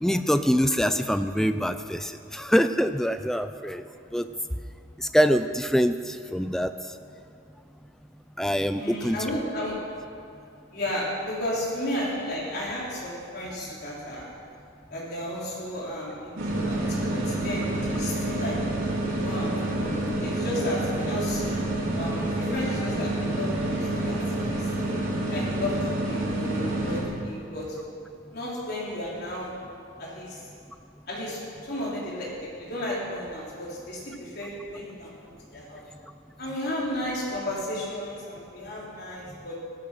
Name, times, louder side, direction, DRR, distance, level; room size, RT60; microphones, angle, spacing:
voice 1, 0.0-3.8 4.1-4.3 5.1-6.7 8.4-9.2, equal, ahead, 9 dB, 0.5 m, -24 dB
voice 2, 8.8-9.7 10.7-14.3 14.9-16.8 17.1-18.6 19.2-19.5 19.8-21.4 21.9-23.8 24.0-24.7 25.3-27.7 28.3-29.5 30.0-30.4 31.1-35.8 36.4-39.6, left 1 dB, 50° left, -6 dB, 4.5 m, -33 dB
sound 1, 16.4-27.0, right 1 dB, 80° right, 3.5 m, -28 dB
15.5 x 13.0 x 6.2 m, 2.5 s
head